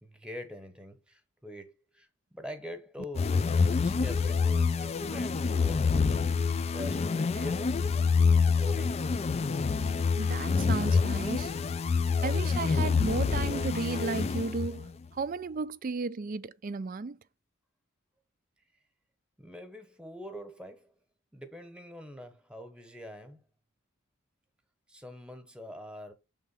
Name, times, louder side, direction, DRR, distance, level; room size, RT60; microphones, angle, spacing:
voice 1, 0.0-3.4 3.8-6.0 6.5-7.7 8.4-9.3 19.4-20.9 21.3-23.4 24.9-26.1, left 1 dB, 5° right, 1.0 m, -45 dB
sound 1, 3.2-14.9, left 5 dB, 30° left, 0.3 m, -27 dB
voice 2, 10.2-11.5 12.2-17.2, right 4 dB, 40° right, 0.4 m, -34 dB
6.7 x 3.6 x 5.5 m
head